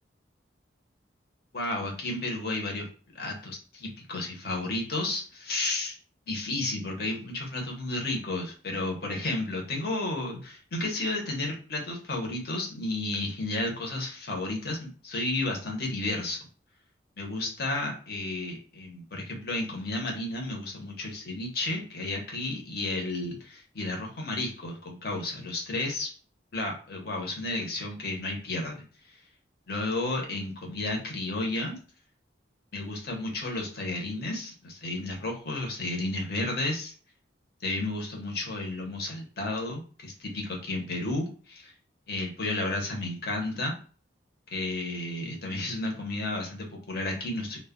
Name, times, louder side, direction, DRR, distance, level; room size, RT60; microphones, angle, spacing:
voice 1, 1.5-2.9 3.1-5.9 6.3-16.4 17.2-26.1 26.5-28.8 29.7-31.8 32.7-36.9 37.6-41.7 42.1-43.8 44.5-47.6, left 2 dB, 55° left, 1 dB, 0.8 m, -32 dB
2.1 x 2.1 x 3.5 m, 0.40 s
head